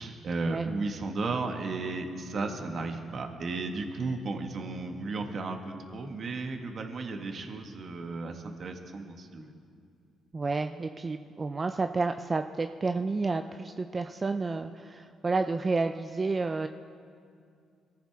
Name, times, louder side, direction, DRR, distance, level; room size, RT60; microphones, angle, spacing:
voice 1, 0.0-9.5, right 3 dB, 50° right, 4 dB, 1.7 m, -34 dB
voice 2, 10.3-16.7, right 3 dB, 30° right, 7 dB, 0.5 m, -30 dB
23.0 x 15.0 x 3.6 m, 2.3 s
cardioid pair, 90°, 0 cm